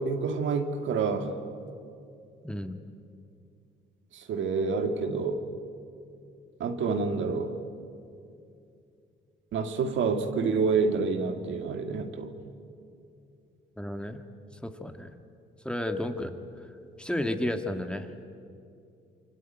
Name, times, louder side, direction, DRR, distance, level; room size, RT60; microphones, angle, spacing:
voice 1, 0.0-1.4 4.1-5.4 6.6-7.5 9.5-12.3, right 4 dB, 75° right, 6 dB, 2.3 m, -28 dB
voice 2, 2.4-2.8 13.8-14.2 14.6-15.1 15.6-16.4 17.0-18.1, left 1 dB, 5° left, 6 dB, 2.0 m, -32 dB
27.5 x 23.5 x 9.1 m, 2.5 s
cardioid pair, 90°, 20 cm